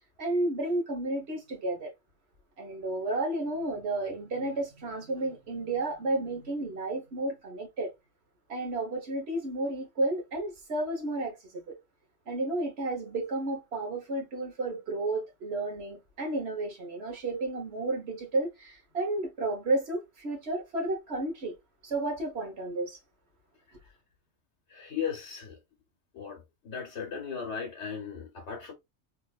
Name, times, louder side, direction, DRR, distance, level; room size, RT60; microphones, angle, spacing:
voice 1, 0.2-1.9 2.6-7.9 8.5-11.4 11.7-11.8 12.3-21.5 21.8-23.0, right 2 dB, 65° right, 1.5 m, -32 dB
voice 2, 24.7-25.6 26.1-28.7, left 7 dB, 75° left, 1.2 m, -37 dB
3.5 x 3.0 x 2.4 m
omnidirectional pair, 1.2 m